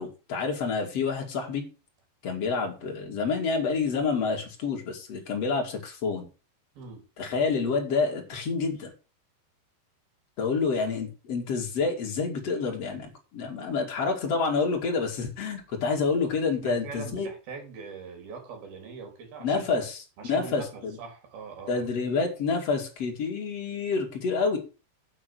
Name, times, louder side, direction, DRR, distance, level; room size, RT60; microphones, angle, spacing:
voice 1, 0.0-1.6 2.2-6.3 7.2-8.9 10.4-17.3 19.4-21.0 21.7-24.6, left 4 dB, 40° left, 2.9 m, -28 dB
voice 2, 16.6-19.9 20.2-21.9, right 5 dB, 50° right, 5.4 m, -42 dB
8.8 x 7.6 x 6.3 m
omnidirectional pair, 5.9 m